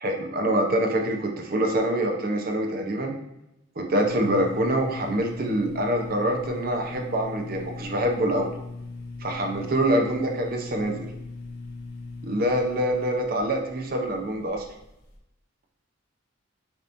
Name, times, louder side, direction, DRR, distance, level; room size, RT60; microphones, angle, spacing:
voice 1, 0.0-3.2 3.8-8.5 9.2-11.1 12.2-14.6, right 1 dB, 45° right, 2 dB, 0.7 m, -25 dB
sound 1, 4.0-15.2, left 3 dB, 50° left, 0.8 m, -39 dB
6.8 x 3.0 x 2.6 m, 0.88 s
head